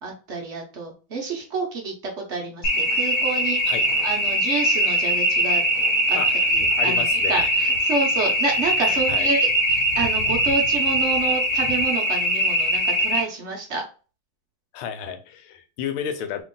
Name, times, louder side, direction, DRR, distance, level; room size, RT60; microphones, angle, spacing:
voice 1, 0.0-3.8 4.0-5.6 6.1-6.2 6.5-13.9, right 3 dB, 85° right, 0.6 m, -29 dB
sound 1, 2.6-13.2, equal, 60° left, 1.0 m, -21 dB
voice 2, 6.2-7.5 8.8-9.3 14.7-16.4, left 8 dB, 80° left, 1.4 m, -32 dB
2.9 x 2.9 x 3.7 m
omnidirectional pair, 2.3 m